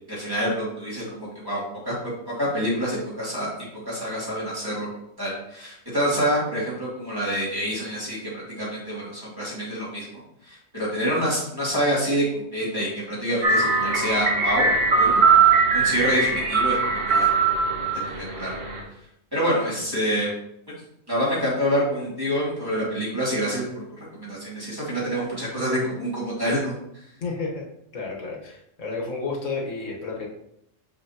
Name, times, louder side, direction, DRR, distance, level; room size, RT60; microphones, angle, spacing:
voice 1, 0.1-3.5 3.9-4.9 5.2-14.7 15.0-15.2 15.7-17.3 18.3-18.5 19.3-20.3 21.1-26.7, equal, 15° right, -8 dB, 2.5 m, -27 dB
sound 1, 13.4-18.8, right 4 dB, 70° right, 1.4 m, -20 dB
voice 2, 27.2-27.6 27.9-28.5 28.8-30.3, left 3 dB, 80° left, -2 dB, 1.6 m, -31 dB
6.5 x 5.6 x 2.8 m, 0.77 s
omnidirectional pair, 1.3 m